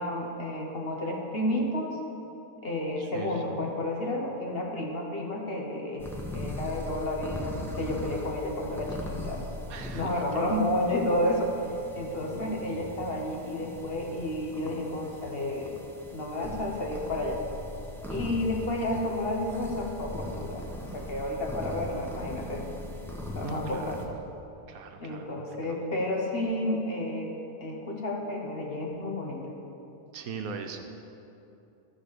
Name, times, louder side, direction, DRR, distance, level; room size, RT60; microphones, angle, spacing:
voice 1, 0.0-2.0 2.6-6.1 6.3-9.4 9.9-11.5 11.9-15.7 16.1-17.4 18.1-20.6 20.9-22.7 23.3-24.0 25.0-27.3 27.6-29.5, left 1 dB, 45° left, 0 dB, 1.3 m, -31 dB
voice 2, 3.1-3.5 9.7-10.1 10.4-10.5 23.4-23.8 24.7-25.3 25.7-25.8 30.1-30.8, right 5 dB, 90° right, 5 dB, 1.3 m, -39 dB
sound 1, 6.0-24.1, left 1 dB, ahead, 0.9 m, -40 dB
13.0 x 5.0 x 6.7 m, 2.8 s
omnidirectional pair, 1.4 m